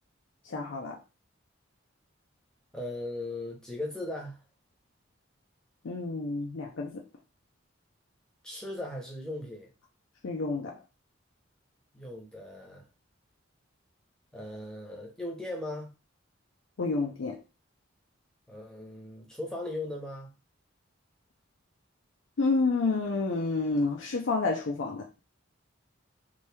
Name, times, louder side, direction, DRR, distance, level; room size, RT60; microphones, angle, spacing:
voice 1, 0.5-1.0 5.8-7.0 10.2-10.8 16.8-17.4 22.4-25.1, left 3 dB, 70° left, 0.5 m, -29 dB
voice 2, 2.7-4.4 8.4-9.7 11.9-12.8 14.3-15.9 18.5-20.3, left 1 dB, 5° left, 0.9 m, -38 dB
2.9 x 2.7 x 3.4 m
head